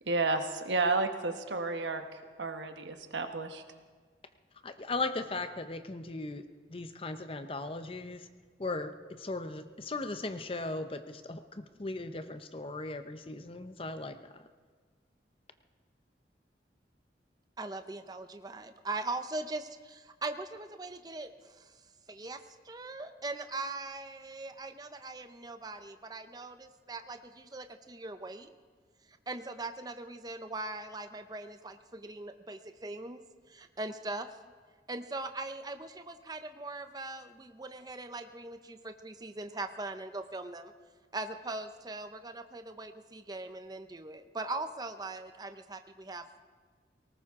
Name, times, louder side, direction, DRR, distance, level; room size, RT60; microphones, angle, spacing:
voice 1, 0.1-2.0 2.4-3.6, right 3 dB, 85° right, 6 dB, 1.2 m, -31 dB
voice 2, 4.6-6.4 6.7-8.3 8.6-14.5, left 2 dB, 30° left, 9 dB, 0.7 m, -38 dB
voice 3, 17.6-21.3 21.6-21.7 22.1-28.5 29.3-33.2 33.5-34.3 34.9-40.7 41.1-46.2, right 2 dB, 20° right, 8 dB, 0.6 m, -40 dB
18.5 x 18.5 x 3.7 m, 1.5 s
head